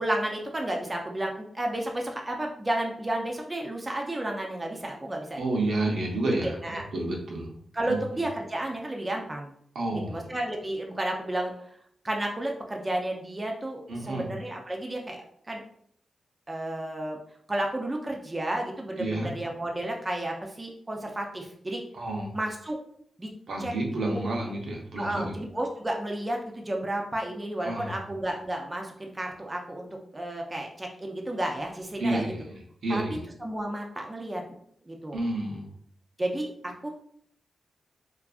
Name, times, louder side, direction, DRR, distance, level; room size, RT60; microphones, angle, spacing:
voice 1, 0.0-5.4 6.4-6.8 7.7-9.5 9.9-11.5 12.0-15.6 16.5-17.2 17.5-21.8 22.3-22.8 23.2-23.3 23.6-23.7 24.1-24.2 25.0-29.9 30.1-32.3 32.9-33.0 33.4-34.4 34.9-35.2 36.2-36.9, right 1 dB, 20° right, 1 dB, 0.4 m, -32 dB
voice 2, 5.4-7.5 7.9-8.0 9.7-10.3 13.9-14.3 19.0-19.3 21.9-22.3 23.5-25.3 27.6-28.0 32.0-33.2 35.1-35.7, right 2 dB, 70° right, -1 dB, 0.6 m, -30 dB
2.5 x 2.4 x 2.3 m, 0.65 s
cardioid pair, 90°, 0 cm